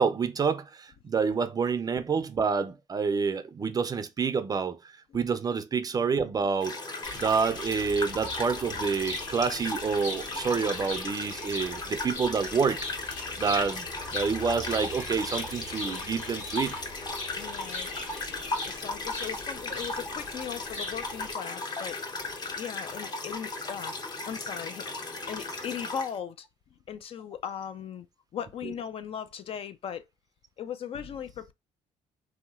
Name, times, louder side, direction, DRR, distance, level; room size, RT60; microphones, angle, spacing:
voice 1, 0.0-4.8 5.1-6.8 7.1-12.8 13.4-13.9 14.1-16.7, right 5 dB, 30° right, 0.4 m, -28 dB
sound 1, 6.6-26.2, left 2 dB, 35° left, 0.7 m, -36 dB
sound 2, 7.0-21.3, left 2 dB, 70° left, 1.5 m, -41 dB
voice 2, 17.4-17.9 18.7-22.0 22.5-24.0 24.2-24.9 25.3-26.5 26.9-28.1 28.3-30.0 30.6-31.5, left 8 dB, 50° left, 0.4 m, -38 dB
3.1 x 2.8 x 2.3 m
cardioid pair, 95°, 13 cm